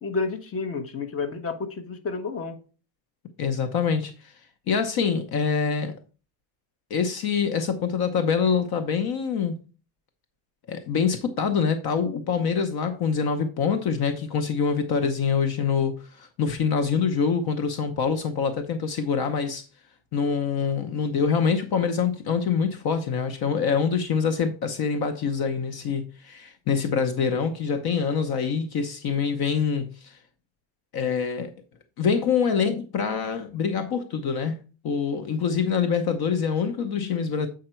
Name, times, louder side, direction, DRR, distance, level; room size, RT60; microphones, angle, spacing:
voice 1, 0.0-2.6, left 4 dB, 30° left, 1.1 m, -30 dB
voice 2, 3.4-4.3 4.7-5.9 6.9-9.6 10.7-19.7 20.1-30.2 30.9-31.5 32.0-34.6 34.8-37.5, left 6 dB, 55° left, 0.9 m, -25 dB
7.8 x 5.1 x 4.4 m
cardioid pair, 145°, 45 cm